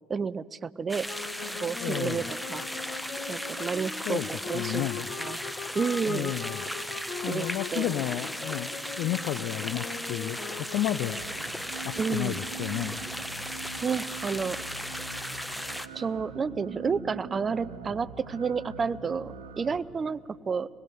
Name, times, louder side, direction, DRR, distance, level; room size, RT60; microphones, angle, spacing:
voice 1, 0.1-1.1 1.6-2.7 3.3-4.2 4.5-4.9 5.2-5.4 5.7-6.3 7.3-7.5 7.7-8.0 12.0-12.4 13.6-14.6 15.9-20.7, right 5 dB, 35° right, 17 dB, 0.5 m, -30 dB
sound 1, 0.9-15.9, equal, 5° left, 1.0 m, -36 dB
sound 2, 1.1-11.4, left 5 dB, 50° left, 1.7 m, -40 dB
voice 2, 1.5-2.2 4.1-4.3 4.5-5.1 6.1-6.6 7.2-8.7 9.0-11.2 11.8-13.0, left 13 dB, 65° left, 16 dB, 0.5 m, -32 dB
sound 3, 11.2-19.8, right 5 dB, 85° right, 1.2 m, -43 dB
24.5 x 20.5 x 6.8 m, 2.8 s
hypercardioid pair, 60°, 0 cm